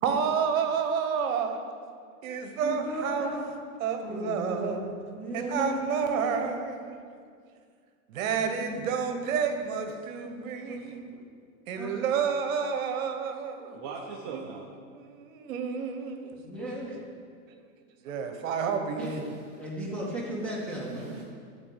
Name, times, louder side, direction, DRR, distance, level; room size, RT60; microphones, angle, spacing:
voice 1, 0.0-1.6 2.2-3.3 3.8-4.9 5.3-7.0 8.1-11.1 11.7-13.8 14.3-14.4 15.0-16.4 18.0-19.0, right 6 dB, 65° right, 6 dB, 1.2 m, -30 dB
voice 2, 2.6-3.5 4.0-4.9 5.2-6.4 8.3-8.8 9.1-9.3 10.7-11.2 11.8-11.9 16.4-17.1 19.0-19.2 19.6-21.1, equal, 5° left, -5 dB, 1.9 m, -35 dB
voice 3, 13.7-14.7 19.0-19.7 20.5-21.2, right 5 dB, 20° right, -1 dB, 0.3 m, -41 dB
11.5 x 4.5 x 7.4 m, 2.1 s
supercardioid pair, 145°, 43 cm